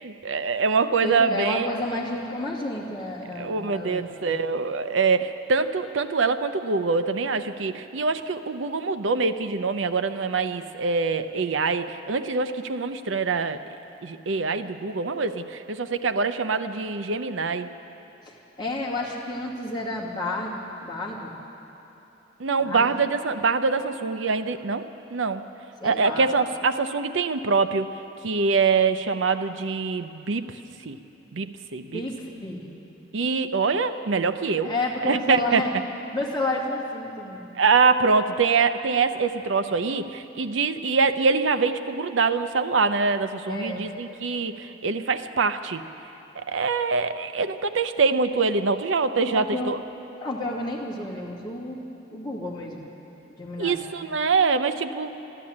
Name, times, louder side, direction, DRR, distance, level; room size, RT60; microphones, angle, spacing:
voice 1, 0.0-1.7 3.4-13.6 14.0-17.7 22.4-25.4 25.8-27.9 28.2-30.5 30.9-31.0 31.3-32.0 33.1-34.7 35.0-35.7 37.6-45.8 46.4-49.8 53.6-55.1, right 4 dB, 75° right, 10 dB, 0.6 m, -24 dB
voice 2, 1.0-4.3 18.3-21.4 22.6-22.9 25.8-26.3 31.8-32.6 34.6-35.7 36.1-37.4 43.4-43.8 49.3-49.8 50.2-51.8 52.1-52.9 53.3-53.8, left 2 dB, 25° left, -5 dB, 2.3 m, -31 dB
13.0 x 13.0 x 8.6 m, 2.9 s
head